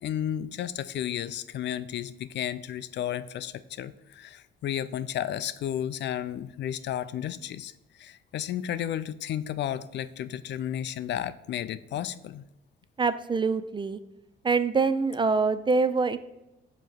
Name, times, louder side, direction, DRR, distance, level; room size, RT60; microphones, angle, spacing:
voice 1, 0.0-12.4, left 10 dB, 60° left, 15 dB, 0.4 m, -33 dB
voice 2, 13.0-14.0 14.4-16.2, right 4 dB, 25° right, 12 dB, 0.4 m, -25 dB
7.0 x 3.0 x 4.5 m, 0.93 s
cardioid pair, 90°, 20 cm